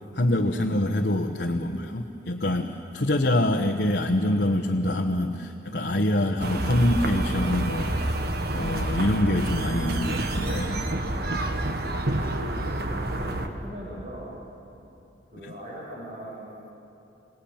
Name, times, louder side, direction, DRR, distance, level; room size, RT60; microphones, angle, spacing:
voice 1, 0.1-8.0 8.5-10.8 11.4-11.6 15.4-15.5, left 1 dB, 65° left, 2 dB, 1.2 m, -25 dB
sound 1, 6.4-13.5, right 1 dB, 60° right, 1.6 m, -28 dB
voice 2, 12.4-14.3 15.3-16.7, right 1 dB, 40° right, -5 dB, 5.7 m, -40 dB
28.0 x 18.0 x 8.8 m, 2.8 s
head